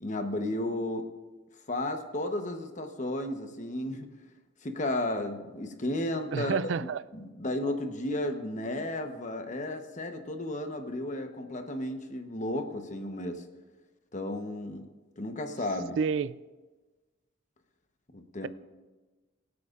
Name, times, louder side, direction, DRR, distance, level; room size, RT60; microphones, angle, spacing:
voice 1, 0.0-1.1 1.7-4.1 4.6-6.6 7.1-13.4 14.1-14.9 15.2-16.0 18.1-18.5, left 1 dB, 40° left, 1.0 m, -33 dB
voice 2, 6.3-7.0 16.0-16.4, right 6 dB, 70° right, 0.4 m, -29 dB
24.0 x 8.5 x 2.5 m
head